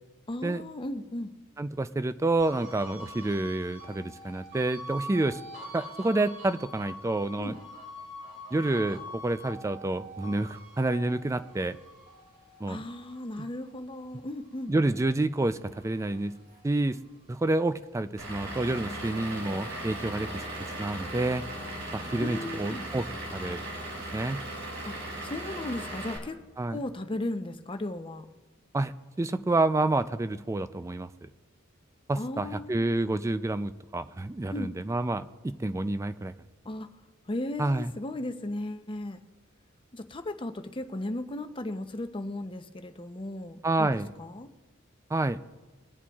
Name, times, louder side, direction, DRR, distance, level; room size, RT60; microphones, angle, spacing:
voice 1, 0.3-1.3 7.4-7.6 12.7-14.7 22.2-22.9 24.8-24.9 25.2-26.4 26.7-28.3 32.2-32.9 34.5-34.7 36.6-36.9 37.3-39.2 39.9-44.5, left 1 dB, 25° left, 8 dB, 0.6 m, -36 dB
voice 2, 1.6-5.4 5.7-7.6 8.5-11.8 12.6-12.8 14.7-16.3 16.6-17.0 17.3-21.4 21.9-23.1 23.3-23.7 23.9-24.4 26.6-26.8 28.7-28.9 29.2-31.1 32.1-36.3 37.6-37.9 43.6-44.1 45.1-45.4, right 2 dB, 15° right, 12 dB, 0.3 m, -28 dB
sound 1, 2.4-15.0 15.4-17.1, equal, 45° right, 3.7 m, -45 dB
Vehicle / Engine, 18.2-26.2, right 1 dB, 85° right, 2.8 m, -37 dB
21.5 x 8.6 x 2.4 m, 1.2 s
head